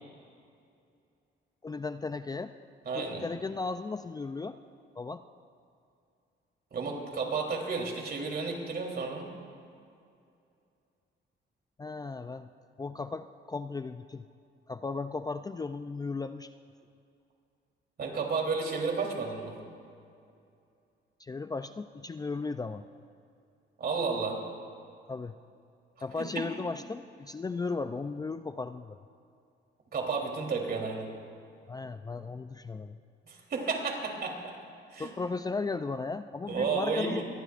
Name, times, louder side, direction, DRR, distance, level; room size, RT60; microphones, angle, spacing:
voice 1, 1.6-2.5 2.9-4.6 5.0-5.2 11.8-12.5 12.8-14.3 14.7-16.5 21.2-22.9 25.1-25.3 26.0-29.0 31.7-33.0 35.0-37.2, left 4 dB, 20° left, 10 dB, 0.4 m, -36 dB
voice 2, 2.9-3.2 6.7-9.3 18.0-19.5 23.8-24.4 26.2-26.4 29.9-31.1 33.3-34.5 34.9-35.1 36.5-37.2, right 4 dB, 50° right, 1 dB, 3.4 m, -32 dB
24.0 x 19.0 x 2.5 m, 2.5 s
cardioid pair, 90°, 20 cm